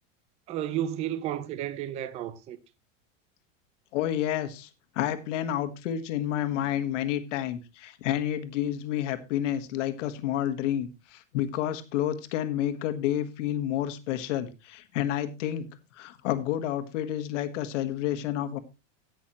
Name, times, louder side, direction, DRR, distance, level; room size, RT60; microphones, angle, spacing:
voice 1, 0.5-2.6, right 11 dB, 15° right, 0.4 m, -32 dB
voice 2, 3.9-4.7 4.9-15.7 15.9-18.6, left 11 dB, 65° left, 1.6 m, -30 dB
17.5 x 6.3 x 3.0 m
supercardioid pair, 160°, 39 cm